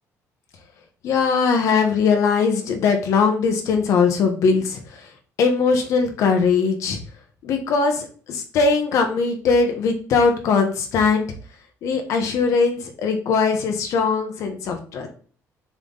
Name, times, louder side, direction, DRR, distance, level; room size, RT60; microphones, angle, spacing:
voice 1, 1.0-4.8 5.4-7.0 7.4-11.3 11.8-15.1, left 5 dB, 60° left, 4 dB, 1.2 m, -20 dB
7.3 x 3.5 x 4.0 m, 0.42 s
cardioid pair, 180°, 6 cm